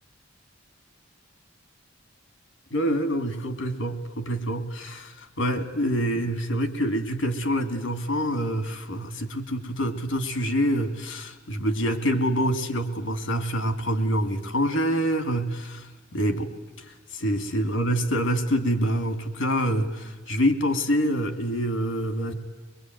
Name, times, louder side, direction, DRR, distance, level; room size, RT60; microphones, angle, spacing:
voice 1, 2.7-16.5 16.8-22.3, equal, 70° left, 9 dB, 2.5 m, -26 dB
23.0 x 22.5 x 9.3 m, 1.2 s
head